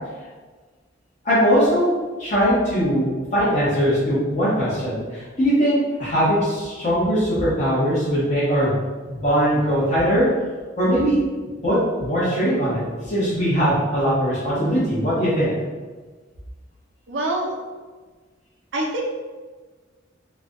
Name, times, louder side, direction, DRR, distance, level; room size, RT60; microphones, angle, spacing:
voice 1, 1.2-1.9 2.2-8.7 9.0-10.3 10.8-11.2 11.6-15.5, equal, 35° left, -10 dB, 1.2 m, -20 dB
voice 2, 17.1-17.6 18.7-19.1, right 1 dB, 70° right, -1 dB, 0.5 m, -25 dB
4.5 x 2.3 x 2.6 m, 1.4 s
head